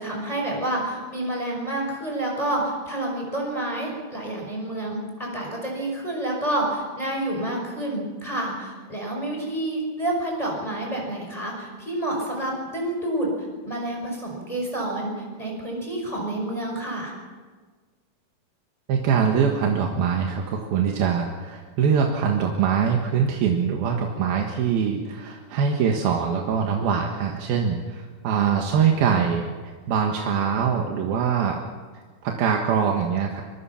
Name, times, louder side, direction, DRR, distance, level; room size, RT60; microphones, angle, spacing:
voice 1, 0.0-13.3 13.6-17.1, right 1 dB, 10° left, -1 dB, 5.6 m, -29 dB
voice 2, 18.9-29.5 29.9-31.6 32.2-33.4, right 7 dB, 85° right, 1 dB, 3.4 m, -23 dB
24.5 x 23.0 x 5.9 m, 1.5 s
omnidirectional pair, 4.2 m